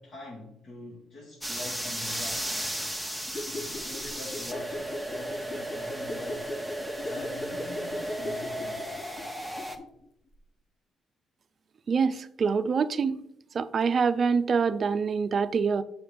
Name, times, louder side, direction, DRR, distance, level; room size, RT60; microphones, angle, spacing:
voice 1, 0.0-2.5 3.5-6.5 7.0-8.9, left 2 dB, 70° left, 2.3 m, -43 dB
sound 1, 1.4-9.8, right 1 dB, 5° left, 1.0 m, -35 dB
sound 2, 3.2-10.0 10.3-10.4, left 2 dB, 35° left, 0.7 m, -39 dB
voice 2, 11.9-13.2 13.5-15.8, right 5 dB, 45° right, 0.4 m, -25 dB
7.0 x 5.6 x 3.4 m
cardioid pair, 90°, 0 cm